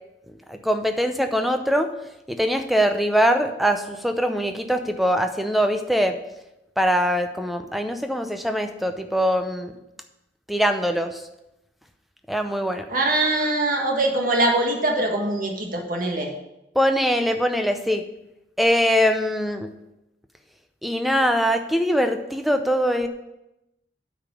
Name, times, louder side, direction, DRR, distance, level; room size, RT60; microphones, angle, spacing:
voice 1, 0.5-1.9 2.3-6.2 6.8-9.7 10.5-11.2 12.3-12.9 16.7-18.0 18.6-19.7 20.8-23.1, equal, ahead, 6 dB, 0.6 m, -22 dB
voice 2, 12.9-16.3, right 2 dB, 50° right, 1 dB, 1.7 m, -22 dB
8.8 x 5.0 x 7.0 m, 0.90 s
head